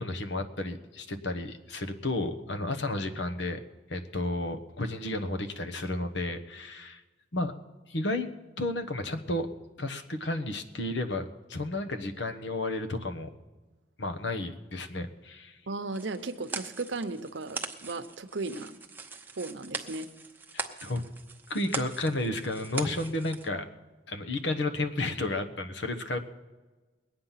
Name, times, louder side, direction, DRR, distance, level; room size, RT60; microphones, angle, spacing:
voice 1, 0.0-3.6 3.9-7.0 7.3-7.5 7.9-8.3 8.6-9.5 9.8-13.3 14.0-15.6 20.8-21.0 21.5-23.7 24.1-26.2, left 2 dB, 75° left, 7 dB, 1.2 m, -32 dB
voice 2, 15.7-18.7 19.4-20.1, right 3 dB, 85° right, 9 dB, 0.9 m, -36 dB
sound 1, 15.9-23.5, right 3 dB, 10° right, 0.8 m, -41 dB
21.0 x 8.8 x 5.8 m, 1.2 s
head